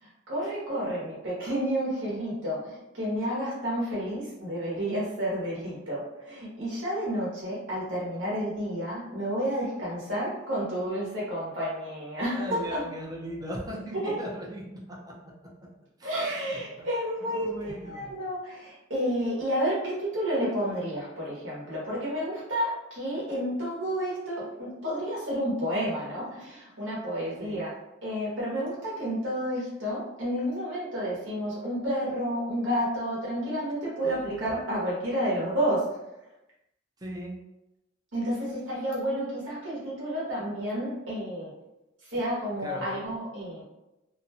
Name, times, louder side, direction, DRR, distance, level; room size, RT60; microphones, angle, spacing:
voice 1, 0.0-12.8 13.9-14.2 16.0-27.7 28.0-36.0 38.1-41.5 42.1-43.6, equal, 75° right, -6 dB, 1.0 m, -30 dB
voice 2, 12.3-14.8 15.1-15.2 16.0-16.9 17.2-18.1 27.4-27.6 34.0-34.3 37.0-37.4 42.6-43.0, equal, 20° right, -2 dB, 0.5 m, -38 dB
2.6 x 2.2 x 2.8 m, 0.95 s
head